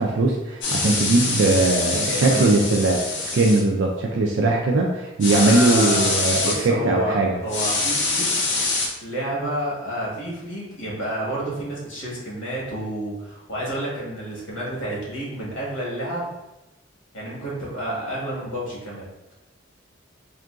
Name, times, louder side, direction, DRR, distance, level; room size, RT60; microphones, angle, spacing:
voice 1, 0.0-7.4, right 2 dB, 70° right, -1 dB, 0.4 m, -20 dB
sound 1, 0.6-3.6 5.2-6.6 7.5-8.9, left 3 dB, 60° left, 0.6 m, -24 dB
voice 2, 2.1-2.7 5.4-8.4 9.0-16.3 17.1-19.1, right 1 dB, 80° left, -5 dB, 1.3 m, -29 dB
3.6 x 2.5 x 2.3 m, 0.97 s
head